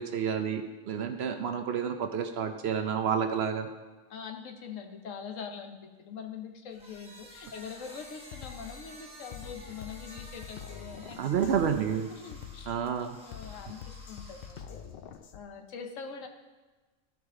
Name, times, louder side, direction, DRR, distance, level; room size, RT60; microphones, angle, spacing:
voice 1, 0.0-3.7 11.2-12.1 12.7-13.2, right 7 dB, 60° right, 6 dB, 0.8 m, -30 dB
voice 2, 4.1-11.2 12.1-12.7 13.2-14.9 15.3-16.3, left 6 dB, 80° left, 5 dB, 1.2 m, -43 dB
sound 1, 6.7-14.9, equal, 5° right, 1.1 m, -52 dB
Drum kit, 7.6-7.7 8.2-15.4, left 8 dB, 60° left, 0.6 m, -46 dB
13.0 x 4.8 x 3.7 m, 1.3 s
omnidirectional pair, 1.3 m